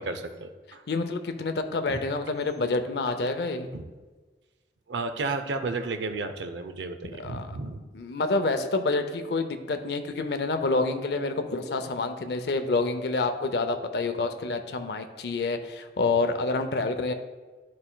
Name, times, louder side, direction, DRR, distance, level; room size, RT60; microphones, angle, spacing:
voice 1, 0.0-0.8 1.9-2.0 3.7-3.8 4.9-7.8, right 3 dB, 85° right, 8 dB, 0.5 m, -33 dB
voice 2, 0.9-3.7 7.2-7.5 7.9-17.1, left 3 dB, 70° left, 8 dB, 0.5 m, -28 dB
11.0 x 4.2 x 2.2 m, 1.3 s
head